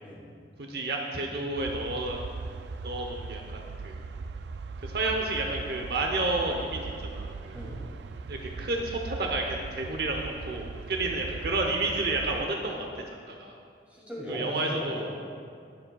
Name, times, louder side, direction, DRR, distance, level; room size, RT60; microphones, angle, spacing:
voice 1, 0.6-2.2 2.8-4.0 4.8-7.6 8.3-12.9 13.3-13.5 14.3-15.1, right 2 dB, 65° right, 1 dB, 0.8 m, -31 dB
sound 1, 1.5-12.5, right 4 dB, 80° right, 0.4 m, -39 dB
voice 2, 13.9-15.2, equal, 10° right, -6 dB, 2.5 m, -37 dB
21.0 x 7.4 x 2.3 m, 2.3 s
head